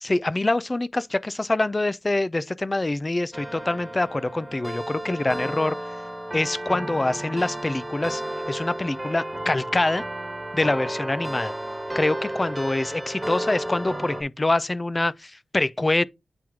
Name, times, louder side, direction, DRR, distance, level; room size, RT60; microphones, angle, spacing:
voice 1, 0.0-5.8 6.3-8.2 8.5-10.0 10.5-11.5 11.9-16.0, left 2 dB, 20° left, 0.3 m, -25 dB
America The Beautiful (Maas-Rowe Digital Carillon Player), 3.3-14.2, right 1 dB, 10° right, 1.4 m, -33 dB
8.6 x 3.0 x 3.6 m
wide cardioid pair, 130°, 0 cm